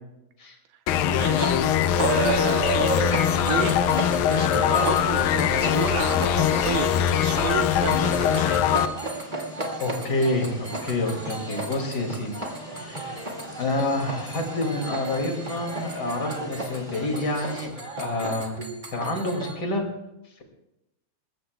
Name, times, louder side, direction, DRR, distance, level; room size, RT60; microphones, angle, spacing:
sound 1, 0.9-8.9, left 10 dB, 80° left, 2.2 m, -22 dB
voice 1, 1.0-1.6 2.0-2.7 3.5-3.8 4.3-8.7, right 10 dB, 75° right, 7 dB, 2.6 m, -31 dB
sound 2, 1.3-19.5, right 2 dB, 40° right, 0.6 m, -33 dB
sound 3, 4.8-17.7, left 1 dB, 15° left, 1.6 m, -43 dB
voice 2, 9.8-13.3 13.6-17.7 18.0-19.8, left 2 dB, 30° left, 2 dB, 2.1 m, -28 dB
28.0 x 14.5 x 2.3 m, 0.91 s
omnidirectional pair, 4.7 m